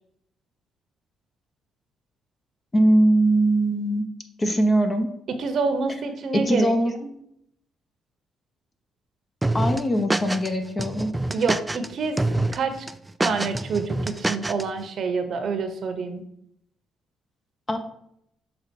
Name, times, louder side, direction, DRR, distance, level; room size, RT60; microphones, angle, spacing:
voice 1, 2.7-4.1 4.4-5.1 6.3-6.9 9.5-11.1 17.7-17.8, right 1 dB, 25° left, 6 dB, 0.9 m, -21 dB
voice 2, 5.4-6.7 7.0-7.1 11.3-12.2 12.5-12.9 13.2-16.2, right 4 dB, 55° right, 7 dB, 0.9 m, -27 dB
sound 1, 9.4-10.5 10.8-11.9 12.2-12.6 12.9-14.6, right 2 dB, 10° right, 0.3 m, -25 dB
6.4 x 3.8 x 4.6 m, 0.73 s
cardioid pair, 95°, 0 cm